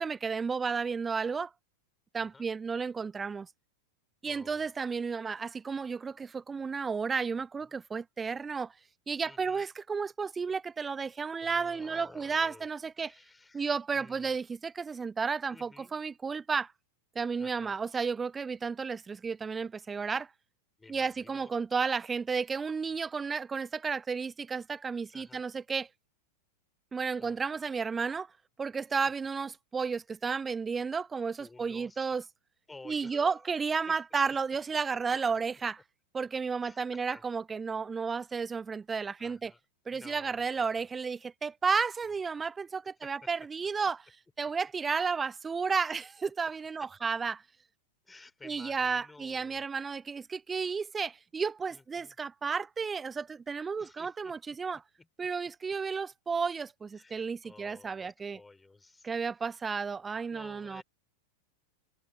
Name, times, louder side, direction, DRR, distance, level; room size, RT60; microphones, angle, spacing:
voice 1, 0.0-1.5 2.1-3.5 4.2-8.7 9.1-13.1 13.5-16.7 17.1-20.3 20.9-25.9 26.9-28.3 28.6-32.2 32.9-35.8 36.1-39.5 39.9-44.0 44.4-47.4 48.4-54.8 55.2-58.4 59.0-60.8, right 5 dB, 15° right, 0.9 m, -32 dB
voice 2, 2.2-2.5 4.3-4.7 7.7-7.8 9.2-9.7 11.4-12.7 13.0-14.4 15.5-15.9 17.4-17.8 20.8-21.5 25.1-25.4 27.2-27.5 29.0-29.1 31.4-32.1 32.7-33.5 33.9-34.0 36.6-37.2 38.1-38.4 39.2-39.6 39.9-40.7 42.8-43.3 45.8-45.9 46.8-47.1 48.0-49.6 51.7-52.2 53.8-55.1 55.4-55.5 56.9-59.5 60.3-60.8, left 3 dB, 10° left, 4.0 m, -54 dB
figure-of-eight pair, 90°, 0 cm